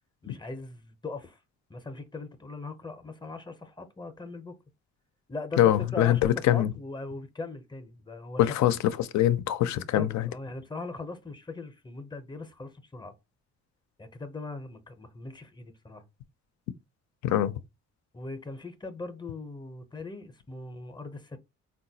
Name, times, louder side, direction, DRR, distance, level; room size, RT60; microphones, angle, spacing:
voice 1, 0.2-1.4 1.7-4.6 5.3-5.6 5.9-8.5 9.9-13.1 14.0-16.0 18.1-21.4, left 3 dB, 15° left, 0.6 m, -40 dB
voice 2, 5.6-6.7 8.4-10.2 17.2-17.5, left 12 dB, 70° left, 0.5 m, -23 dB
3.9 x 2.2 x 2.7 m
cardioid pair, 90°, 30 cm